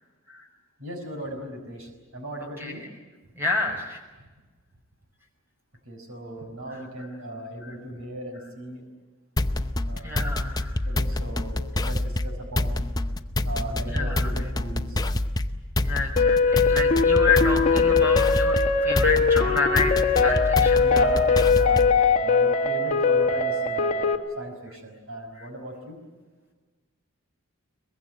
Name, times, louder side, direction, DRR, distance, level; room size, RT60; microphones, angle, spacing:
voice 1, 0.8-2.9 5.9-8.8 9.9-10.1 10.8-12.8 13.5-15.0 20.8-24.1 24.4-26.0, right 1 dB, 70° right, 5 dB, 5.4 m, -36 dB
voice 2, 3.4-4.0 6.7-6.8 7.6-7.8 10.0-10.8 13.9-14.5 15.8-20.9 25.3-25.5, left 3 dB, 10° right, 2 dB, 5.2 m, -29 dB
sound 1, 9.4-22.0, left 1 dB, 20° left, 0.7 m, -27 dB
sound 2, 16.2-24.2, left 5 dB, 35° left, 1.8 m, -21 dB
23.0 x 22.0 x 9.3 m, 1.3 s
head